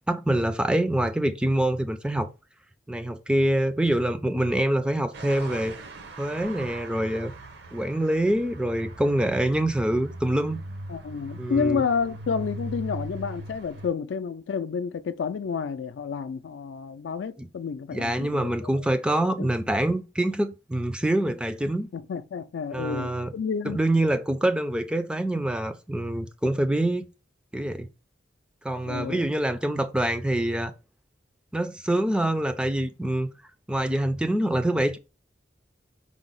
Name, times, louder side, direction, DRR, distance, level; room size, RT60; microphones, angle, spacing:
voice 1, 0.1-2.3 2.9-5.8 6.2-7.3 7.7-10.6 11.4-11.8 17.4-17.5 17.9-21.9 22.7-23.3 23.7-27.1 27.5-27.9 28.6-30.7 31.5-33.3 33.7-35.0, right 1 dB, 5° right, 0.3 m, -25 dB
sound 1, 5.1-13.9, right 1 dB, 65° right, 0.6 m, -40 dB
voice 2, 10.9-18.7 19.4-19.5 21.9-23.8 28.9-29.2, left 6 dB, 75° left, 0.4 m, -30 dB
4.9 x 2.0 x 3.7 m
head